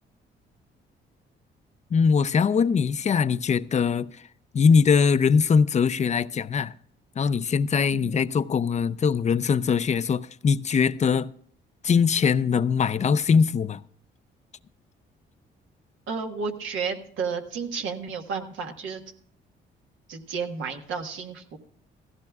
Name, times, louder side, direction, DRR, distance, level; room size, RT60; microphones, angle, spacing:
voice 1, 1.9-4.2 4.5-6.7 7.2-11.3 11.8-13.8, left 6 dB, 35° left, 0.5 m, -22 dB
voice 2, 16.1-19.0 20.1-21.6, right 5 dB, 85° right, 1.5 m, -32 dB
16.0 x 15.0 x 2.4 m
cardioid pair, 90°, 20 cm